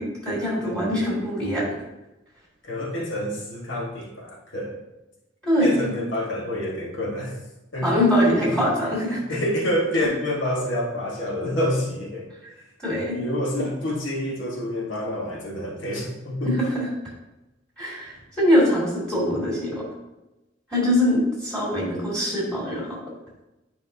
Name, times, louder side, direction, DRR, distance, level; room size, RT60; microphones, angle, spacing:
voice 1, 0.0-1.7 5.4-6.0 7.8-9.4 12.8-13.2 16.4-16.9 17.8-19.8 20.7-23.0, equal, 5° left, -6 dB, 2.4 m, -23 dB
voice 2, 0.6-0.9 2.6-4.8 5.6-7.4 7.7-7.9 9.0-12.3 13.1-16.7, left 1 dB, 85° left, -2 dB, 1.4 m, -28 dB
9.6 x 5.1 x 2.7 m, 0.99 s
head